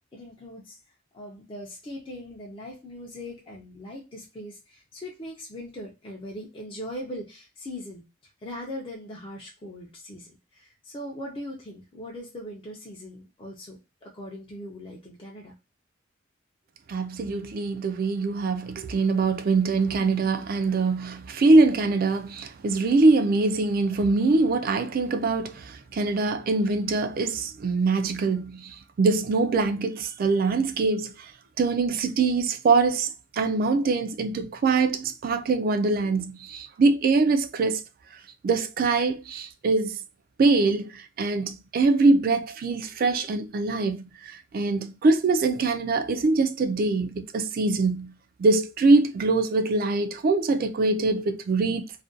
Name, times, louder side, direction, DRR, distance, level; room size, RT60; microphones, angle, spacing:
voice 1, 0.1-0.8 1.1-15.6, left 1 dB, 25° left, 0.5 m, -40 dB
voice 2, 16.9-31.3 31.6-37.8 38.4-40.0 40.4-48.1 48.4-52.0, right 3 dB, 50° right, 0.3 m, -23 dB
2.5 x 2.2 x 2.4 m
head